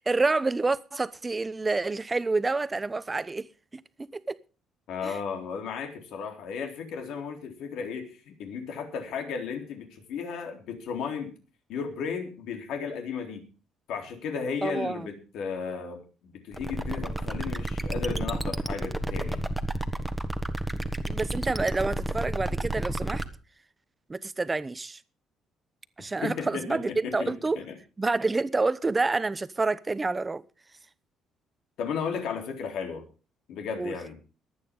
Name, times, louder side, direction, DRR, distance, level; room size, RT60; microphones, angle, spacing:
voice 1, 0.0-4.4 5.0-5.2 14.6-15.1 21.1-23.2 24.1-25.0 26.0-27.6 28.0-30.4 33.8-33.9, right 3 dB, 20° right, 0.8 m, -28 dB
voice 2, 4.9-11.3 11.7-13.5 13.9-19.5 26.2-27.7 31.8-33.0 33.5-34.2, left 6 dB, 75° left, 3.7 m, -34 dB
sound 1, 16.5-23.3, right 1 dB, ahead, 1.4 m, -31 dB
23.0 x 9.1 x 3.8 m
cardioid pair, 130°, 0 cm